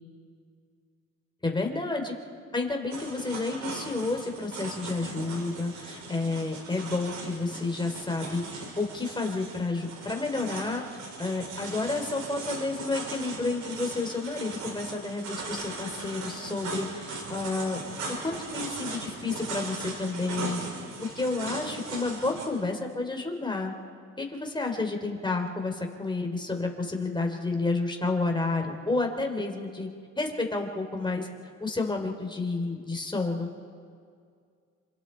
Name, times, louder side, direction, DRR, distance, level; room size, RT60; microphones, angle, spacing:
voice 1, 1.4-2.1 2.5-10.8 11.2-17.8 18.2-20.6 21.0-23.7 24.2-29.9 30.2-31.3 31.6-33.5, left 3 dB, 15° left, 2 dB, 3.5 m, -30 dB
sound 1, 2.9-22.5, right 3 dB, 80° right, 5.9 m, -38 dB
28.5 x 26.5 x 4.6 m, 2.2 s
cardioid pair, 90°, 30 cm